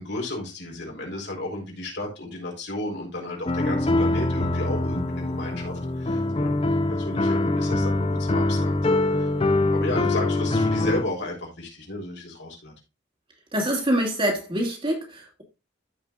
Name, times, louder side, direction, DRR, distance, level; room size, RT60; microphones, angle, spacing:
voice 1, 0.0-6.5 6.9-12.7, left 1 dB, 65° left, 4.2 m, -33 dB
sound 1, 3.5-11.0, left 2 dB, 30° left, 0.7 m, -24 dB
voice 2, 13.5-15.4, right 1 dB, 30° right, 2.8 m, -25 dB
14.5 x 5.7 x 2.5 m
head